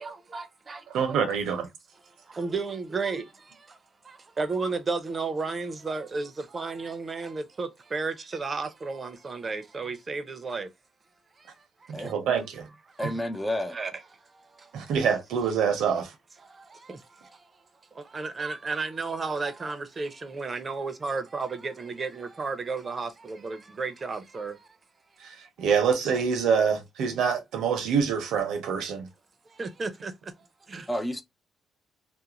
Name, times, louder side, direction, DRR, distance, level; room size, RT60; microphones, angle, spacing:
voice 1, 0.0-0.8 1.1-1.2 2.4-3.2 4.4-6.3 6.5-10.7 13.0-13.1 13.7-13.9 18.1-24.5 29.6-30.1 30.7-30.8, right 4 dB, 35° right, 0.6 m, -32 dB
voice 2, 0.9-1.7 11.9-12.7 13.0-13.1 14.7-16.1 25.2-29.1, right 6 dB, 85° right, 0.7 m, -26 dB
voice 3, 13.0-13.8 30.9-31.2, left 1 dB, 15° left, 0.5 m, -30 dB
2.4 x 2.1 x 2.9 m
cardioid pair, 90°, 0 cm